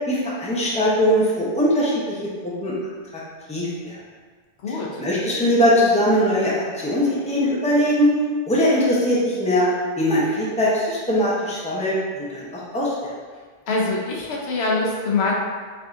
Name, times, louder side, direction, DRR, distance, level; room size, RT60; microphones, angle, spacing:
voice 1, 0.1-2.2 2.4-2.7 3.5-3.9 5.0-8.1 8.5-9.7 10.0-12.5 12.7-13.1, equal, 10° left, -7 dB, 0.6 m, -21 dB
voice 2, 4.6-5.0 13.7-15.3, left 3 dB, 90° left, -2 dB, 1.0 m, -24 dB
4.7 x 2.7 x 2.5 m, 1.5 s
omnidirectional pair, 1.0 m